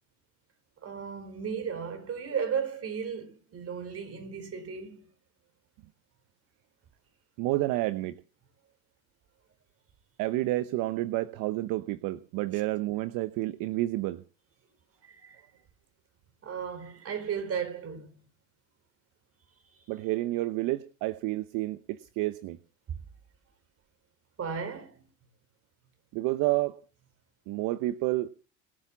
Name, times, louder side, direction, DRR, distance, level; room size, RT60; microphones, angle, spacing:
voice 1, 0.8-5.1 15.0-15.4 16.4-18.1 24.4-24.9, right 7 dB, 35° right, 4.3 m, -35 dB
voice 2, 7.4-8.2 10.2-14.2 19.9-22.6 26.1-26.8 27.5-28.3, right 17 dB, 50° right, 0.9 m, -30 dB
21.5 x 7.6 x 7.1 m
hypercardioid pair, 95°, 42 cm